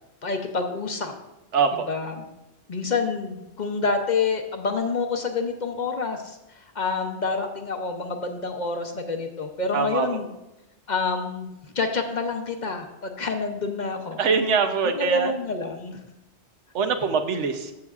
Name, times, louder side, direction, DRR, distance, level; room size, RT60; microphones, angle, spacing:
voice 1, 0.2-1.1 1.9-2.3 2.7-10.3 10.9-14.2 14.8-16.0, left 4 dB, 45° left, 5 dB, 0.7 m, -28 dB
voice 2, 1.5-1.9 9.7-10.1 14.2-15.3 16.7-17.7, right 5 dB, 85° right, 7 dB, 1.1 m, -23 dB
14.0 x 5.7 x 2.4 m, 0.95 s
omnidirectional pair, 1.2 m